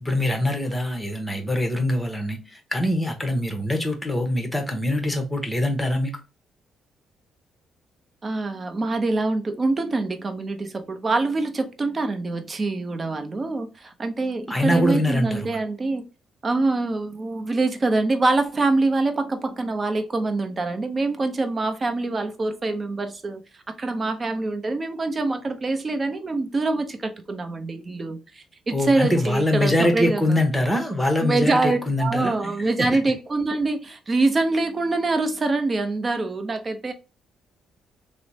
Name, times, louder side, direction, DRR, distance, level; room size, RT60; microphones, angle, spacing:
voice 1, 0.0-6.1 14.5-15.6 28.7-32.3 32.8-32.9, left 1 dB, 10° left, 0.9 m, -23 dB
voice 2, 8.2-16.0 16.4-23.4 23.8-30.4 31.2-36.9, right 3 dB, 30° right, 0.6 m, -25 dB
3.1 x 2.0 x 4.0 m
cardioid pair, 90°, 0 cm